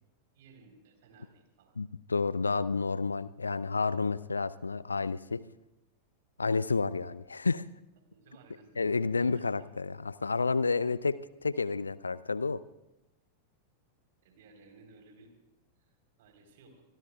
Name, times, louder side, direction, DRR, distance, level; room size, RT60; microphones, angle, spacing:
voice 1, 0.3-1.8 8.1-9.5 12.4-12.6 14.2-15.3 15.8-15.9 16.2-16.8, right 4 dB, 55° right, 4 dB, 3.7 m, -58 dB
voice 2, 1.8-5.4 6.4-7.6 8.8-12.6, left 4 dB, 75° left, 18 dB, 0.5 m, -30 dB
26.5 x 21.0 x 2.3 m, 0.97 s
figure-of-eight pair, 90°, 0 cm